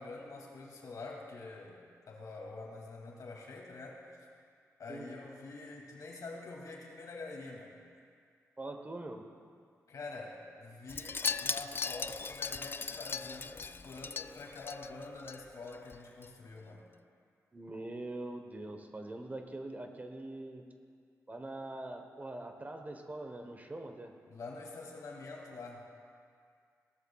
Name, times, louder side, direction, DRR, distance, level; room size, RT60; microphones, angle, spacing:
voice 1, 0.0-1.8 2.1-4.3 4.8-7.8 9.9-16.9 24.3-25.9, left 3 dB, 70° left, -1 dB, 2.5 m, -46 dB
voice 2, 8.6-9.3 17.5-20.6 21.3-24.1, right 2 dB, 25° right, 5 dB, 1.1 m, -43 dB
Wind chime, 10.9-15.4 15.7-16.0 16.2-16.3, left 5 dB, 40° left, 0.3 m, -38 dB
17.5 x 13.0 x 2.4 m, 2.2 s
cardioid pair, 75°, 6 cm